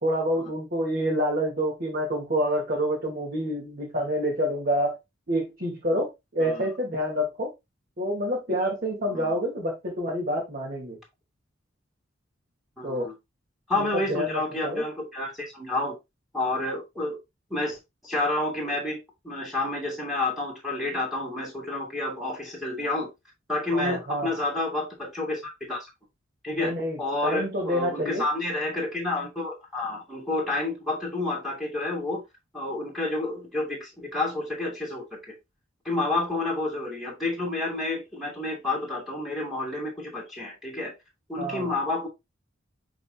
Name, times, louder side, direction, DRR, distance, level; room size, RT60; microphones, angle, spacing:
voice 1, 0.0-5.0 5.3-7.5 8.0-11.0 12.8-13.1 13.8-14.8 23.7-24.3 26.5-28.2 41.4-41.7, equal, 50° right, 2.3 m, -28 dB
voice 2, 9.1-9.4 12.8-13.1 13.7-16.0 16.3-17.2 17.5-17.8 18.0-19.0 19.2-23.1 23.5-25.9 26.4-32.2 32.5-35.3 35.8-40.9 41.3-42.1, left 2 dB, ahead, 2.4 m, -29 dB
11.0 x 4.0 x 2.3 m
head